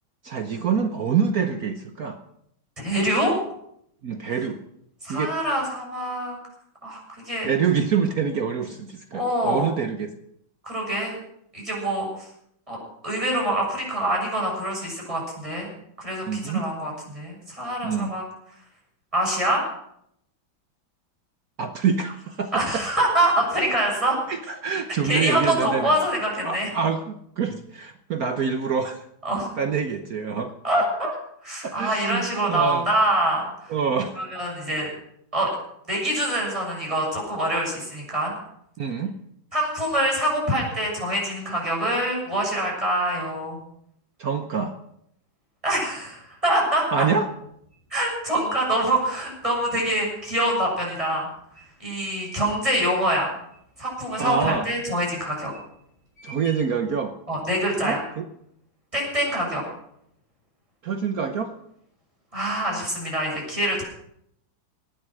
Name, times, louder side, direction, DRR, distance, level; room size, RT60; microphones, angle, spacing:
voice 1, 0.2-2.2 4.0-4.6 5.1-5.3 7.4-10.1 16.2-16.7 17.8-18.1 21.6-22.8 24.3-25.9 26.4-29.0 29.6-30.5 31.6-32.9 33.7-34.2 38.8-39.1 44.2-44.8 46.9-47.3 54.2-54.7 56.2-57.2 57.8-58.2 60.8-61.5, right 6 dB, 55° right, 7 dB, 1.2 m, -26 dB
voice 2, 2.8-3.3 5.0-6.3 6.8-7.5 9.1-9.7 10.6-11.2 11.5-12.3 12.7-12.8 13.0-15.7 16.0-18.2 19.1-19.6 22.5-24.2 25.0-26.7 29.2-29.5 30.6-31.1 31.4-33.7 34.2-34.9 35.3-35.5 35.9-38.3 39.5-43.6 45.6-47.1 47.9-51.3 51.8-53.3 53.8-55.5 57.3-58.0 58.9-59.6 62.3-63.8, right 1 dB, 15° right, -2 dB, 6.8 m, -25 dB
sound 1, 47.5-52.8 53.3-53.8 54.1-54.8 55.3-55.7 56.2-56.9, left 1 dB, 10° left, 5.8 m, -46 dB
18.5 x 9.8 x 6.3 m, 0.72 s
omnidirectional pair, 2.1 m